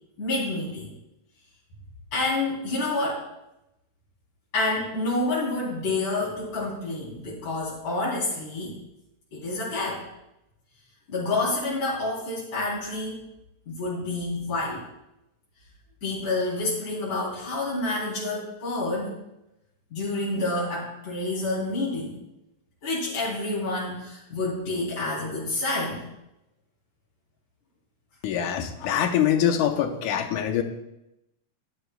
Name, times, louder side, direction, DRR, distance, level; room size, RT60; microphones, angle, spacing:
voice 1, 0.2-0.9 2.1-3.2 4.5-8.7 9.3-10.0 11.1-13.2 13.7-14.8 16.0-19.2 19.9-22.2 22.8-26.0, left 2 dB, 75° left, -7 dB, 4.9 m, -28 dB
voice 2, 28.2-30.6, left 9 dB, 90° left, 6 dB, 2.4 m, -24 dB
15.5 x 11.5 x 2.3 m, 0.88 s
omnidirectional pair, 3.4 m